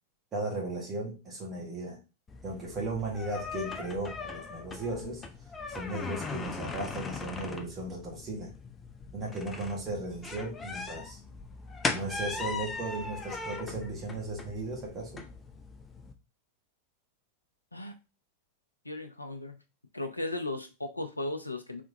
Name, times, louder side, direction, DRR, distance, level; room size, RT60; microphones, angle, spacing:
voice 1, 0.3-2.0 2.4-5.2 5.7-8.5 9.1-11.2 11.9-15.2, right 2 dB, 25° right, 1.5 m, -36 dB
sound 1, 2.3-16.1, left 4 dB, 20° left, 0.6 m, -39 dB
voice 2, 18.9-19.6 19.9-21.8, left 2 dB, 85° left, 0.5 m, -36 dB
3.5 x 3.3 x 2.7 m
figure-of-eight pair, 90°, 0 cm